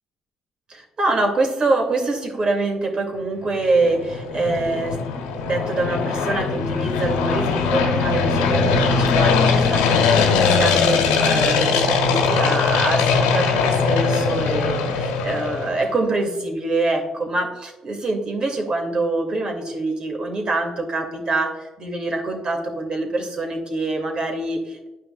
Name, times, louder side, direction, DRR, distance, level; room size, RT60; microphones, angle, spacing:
voice 1, 0.7-5.0 5.4-24.9, right 2 dB, 40° right, 3 dB, 2.3 m, -25 dB
sound 1, 3.6-15.9, left 5 dB, 75° left, 1.2 m, -20 dB
10.5 x 9.2 x 2.3 m, 1.0 s
hypercardioid pair, 50°, 2 cm